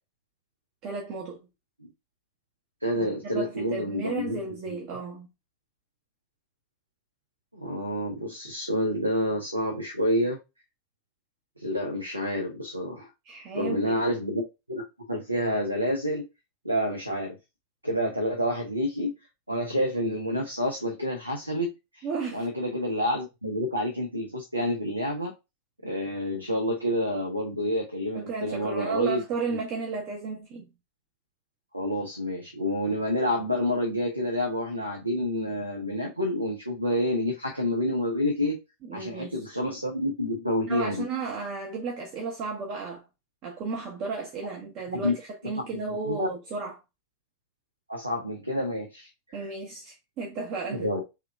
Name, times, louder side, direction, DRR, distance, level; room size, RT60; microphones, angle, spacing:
voice 1, 0.8-1.5 3.0-3.1 3.3-5.3 13.2-14.0 22.0-22.5 28.1-30.6 38.8-39.5 40.7-43.0 43.4-46.8 49.3-50.9, right 4 dB, 40° right, 0.9 m, -34 dB
voice 2, 2.8-4.4 4.7-4.8 7.5-10.4 11.6-13.1 13.5-14.4 14.7-14.8 15.1-16.3 16.6-17.4 17.8-19.1 19.5-22.1 22.3-25.3 25.8-29.2 29.5-29.6 31.7-38.6 38.9-41.0 44.9-45.1 45.6-46.3 47.9-49.5 50.7-51.0, equal, 85° right, 0.7 m, -28 dB
3.5 x 2.9 x 3.4 m
figure-of-eight pair, 90°, 0 cm